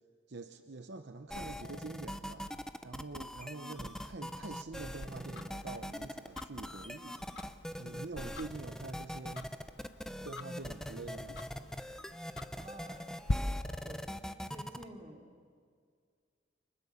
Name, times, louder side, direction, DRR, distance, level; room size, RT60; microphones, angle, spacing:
voice 1, 0.3-7.2 7.8-9.5 10.2-11.4, right 3 dB, 65° right, 7 dB, 0.9 m, -46 dB
sound 1, 1.3-14.8, equal, 5° left, 0.8 m, -42 dB
Tick-tock, 5.0-13.3, left 2 dB, 75° left, 1.0 m, -45 dB
voice 2, 12.6-13.1 13.8-14.0 14.4-15.2, right 1 dB, 30° right, 1 dB, 3.1 m, -50 dB
29.5 x 25.5 x 7.1 m, 2.1 s
head